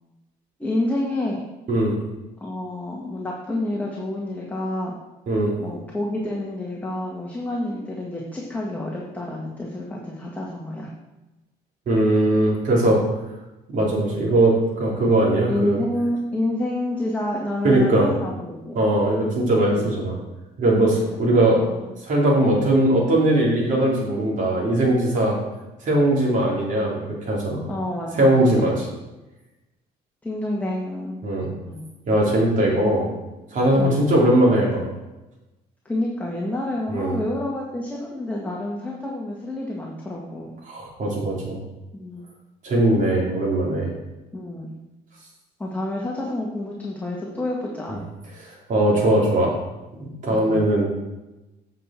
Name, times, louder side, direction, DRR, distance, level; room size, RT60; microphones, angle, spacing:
voice 1, 0.6-1.4 2.4-4.9 5.6-10.9 15.5-18.8 19.7-19.9 20.8-21.4 21.7-21.9 27.7-28.7 30.2-31.2 31.6-31.9 33.7-34.0 35.8-40.5 41.9-42.3 44.3-44.7 45.6-48.0 48.9-49.1 50.3-50.6, left 1 dB, 10° left, -3 dB, 1.4 m, -29 dB
voice 2, 11.9-13.0 13.7-15.8 17.6-18.1 18.7-20.2 20.6-21.7 22.0-25.4 25.8-27.6 28.2-28.7 31.2-31.5 32.1-33.1 33.5-34.9 36.9-37.1 40.7-41.6 42.6-43.9 48.7-49.6 50.0-50.9, right 1 dB, 50° right, -3 dB, 3.0 m, -20 dB
8.3 x 5.7 x 4.3 m, 1.0 s
cardioid pair, 110°, 17 cm